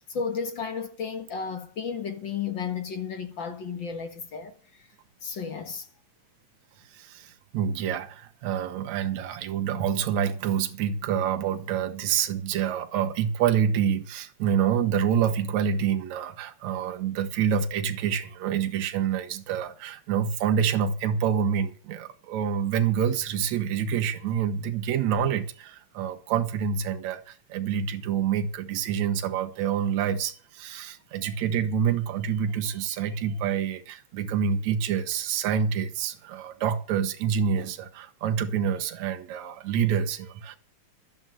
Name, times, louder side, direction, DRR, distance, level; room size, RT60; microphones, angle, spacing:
voice 1, 0.1-4.9 5.2-5.9, left 6 dB, 45° left, 1.8 m, -33 dB
voice 2, 6.9-40.6, right 8 dB, 70° right, 2.4 m, -27 dB
12.0 x 10.0 x 7.6 m
omnidirectional pair, 3.4 m